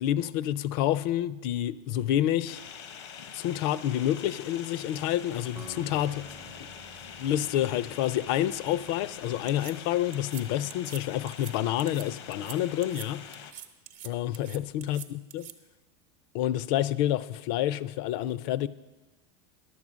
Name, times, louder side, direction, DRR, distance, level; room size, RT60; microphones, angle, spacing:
voice 1, 0.0-2.6 3.3-6.3 7.2-13.2 14.0-15.5 16.3-18.7, left 12 dB, 60° left, 0.4 m, -28 dB
sound 1, 2.5-13.5, left 7 dB, 90° left, 0.9 m, -45 dB
Acoustic guitar, 5.6-9.7, right 4 dB, 15° right, 0.4 m, -51 dB
sound 2, 9.5-9.7 10.1-10.4 10.7-11.0 11.3-11.5 11.8-12.0 12.3-12.6 12.8-13.1 13.3-14.1 14.3-15.5, right 12 dB, 50° right, 0.8 m, -44 dB
11.0 x 7.3 x 6.1 m
supercardioid pair, 140°, 14 cm